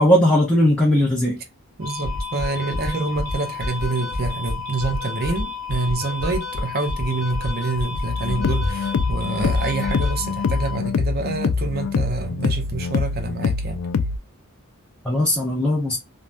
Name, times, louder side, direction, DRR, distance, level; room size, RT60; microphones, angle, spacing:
voice 1, 0.0-1.4 15.0-16.0, equal, 5° left, 0.6 m, -18 dB
voice 2, 1.8-13.8, right 3 dB, 45° right, 0.7 m, -27 dB
sound 1, 1.8-10.8, left 2 dB, 85° right, 1.0 m, -29 dB
sound 2, 8.1-14.2, left 5 dB, 75° left, 0.4 m, -24 dB
3.3 x 2.2 x 2.5 m
head